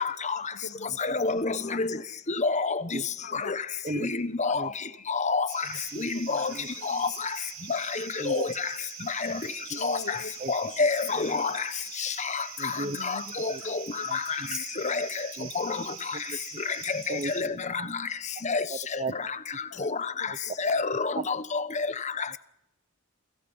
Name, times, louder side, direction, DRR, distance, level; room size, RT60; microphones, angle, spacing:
voice 1, 0.4-0.9 1.6-2.1 3.2-3.6 4.4-5.0 6.1-7.3 9.7-10.3 11.2-11.6 12.8-14.1 19.1-19.3 19.7-19.9 20.2-20.8 21.3-21.4, left 3 dB, 50° left, 1.2 m, -45 dB
voice 2, 1.0-1.9 2.4-2.8 4.0-4.6 5.1-5.5 6.0-6.5 6.9-7.1 7.7-7.8 8.3-8.5 9.2-9.3 9.8-10.0 10.5-11.5 13.0-13.1 13.4-13.8 14.1-14.2 14.8-15.1 15.6-15.8 17.4-17.5 18.4-18.6 19.8-19.9 20.6-21.9, left 4 dB, 35° left, 1.0 m, -27 dB
voice 3, 3.8-4.2 4.5-4.7 5.6-6.7 8.2-8.5 9.7-9.8 10.4-10.5 11.1-11.3 12.6-13.0 13.5-13.6 14.0-14.6 15.4-15.5 16.1-16.4 17.1-17.9 18.7-19.1 19.5-19.9 20.3-20.4 21.1-21.2, right 2 dB, 35° right, 0.8 m, -37 dB
sound 1, 5.5-17.4, right 7 dB, 70° right, 7.1 m, -43 dB
29.0 x 24.0 x 5.6 m
head